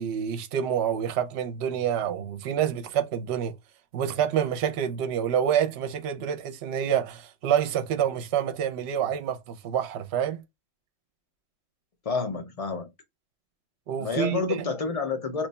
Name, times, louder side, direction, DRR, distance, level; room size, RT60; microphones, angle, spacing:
voice 1, 0.0-3.6 3.9-10.4 13.9-14.6, right 9 dB, 65° right, 0.8 m, -27 dB
voice 2, 12.1-12.9 14.0-15.5, left 4 dB, 50° left, 0.4 m, -29 dB
3.0 x 2.2 x 4.0 m
omnidirectional pair, 1.3 m